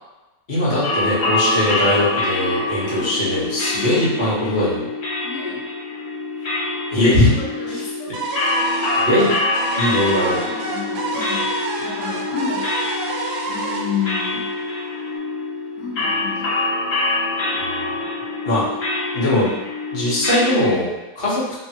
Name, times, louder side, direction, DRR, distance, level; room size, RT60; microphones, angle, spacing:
voice 1, 0.5-4.9 6.9-7.3 9.0-9.3 9.8-10.4 11.1-11.3 17.6-17.9 18.4-18.6 19.1-19.5 19.9-21.4, left 1 dB, 35° left, -9 dB, 0.9 m, -20 dB
sound 1, 0.8-20.6, left 2 dB, 55° left, 1.1 m, -25 dB
voice 2, 3.0-3.9 5.2-5.6 7.4-8.2 8.8-8.9 10.5-12.7 13.5-14.5 15.8-16.5, left 6 dB, 90° left, -4 dB, 1.4 m, -31 dB
sound 2, 8.1-15.1, right 3 dB, 80° right, 1.2 m, -29 dB
3.2 x 2.1 x 2.8 m, 1.0 s
omnidirectional pair, 1.8 m